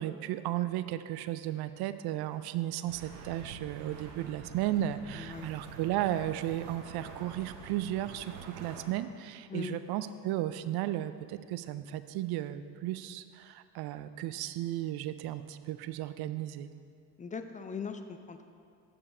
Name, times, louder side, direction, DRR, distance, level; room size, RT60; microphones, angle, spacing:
voice 1, 0.0-16.7, right 13 dB, 55° right, 13 dB, 0.5 m, -34 dB
sound 1, 2.9-8.8, right 5 dB, 85° right, 1.0 m, -47 dB
voice 2, 5.2-5.5 9.5-9.8 17.2-18.4, left 5 dB, 20° left, 8 dB, 0.3 m, -40 dB
6.8 x 5.4 x 5.5 m, 2.3 s
hypercardioid pair, 70°, 48 cm